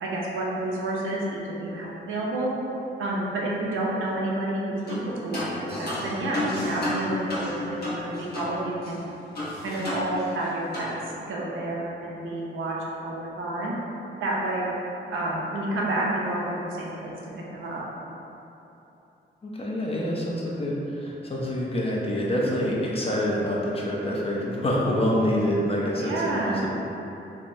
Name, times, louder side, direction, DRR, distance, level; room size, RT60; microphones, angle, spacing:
voice 1, 0.0-2.5 3.0-9.0 9.6-13.8 14.2-14.7 15.1-17.1 17.5-17.8 25.9-26.7, right 1 dB, 80° right, -4 dB, 0.6 m, -29 dB
sound 1, 4.9-5.0 5.3-8.5 8.8-8.9 9.3-10.4 10.7-10.9, left 1 dB, 55° left, 1.0 m, -31 dB
voice 2, 19.4-26.7, equal, 30° left, -4 dB, 0.6 m, -26 dB
3.3 x 2.1 x 2.6 m, 3.0 s
cardioid pair, 70°, 20 cm